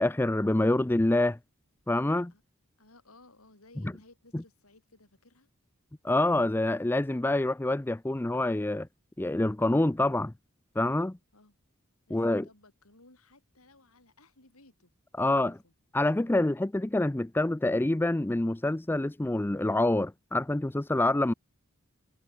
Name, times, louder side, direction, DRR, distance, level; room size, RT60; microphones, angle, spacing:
voice 1, 0.0-1.4 1.9-2.3 4.3-4.4 6.0-8.9 9.2-10.3 10.8-11.2 12.1-12.5 15.2-15.5 15.9-21.3, left 1 dB, 10° left, 0.4 m, -26 dB
voice 2, 2.0-2.4 2.8-5.5 11.3-11.6 12.1-14.9 15.2-15.7, left 2 dB, 85° left, 6.2 m, -58 dB
head